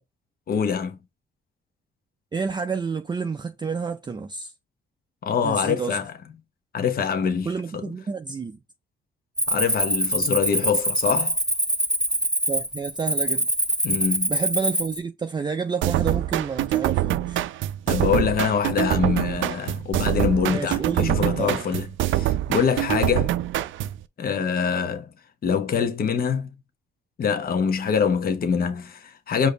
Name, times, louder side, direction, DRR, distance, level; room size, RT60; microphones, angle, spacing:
voice 1, 0.5-1.0 5.2-6.1 6.7-7.5 9.5-11.4 13.8-14.3 17.9-23.3 24.2-25.1 25.4-26.5 27.2-29.5, left 6 dB, 50° left, 0.9 m, -24 dB
voice 2, 2.3-4.5 5.4-6.0 7.5-8.6 12.5-13.5 14.3-17.4 20.5-21.7, right 5 dB, 20° right, 0.4 m, -29 dB
Cricket, 9.4-15.0, right 1 dB, 5° right, 0.8 m, -24 dB
sound 1, 15.8-24.0, right 14 dB, 80° right, 0.4 m, -25 dB
5.0 x 2.7 x 3.9 m
cardioid pair, 90°, 20 cm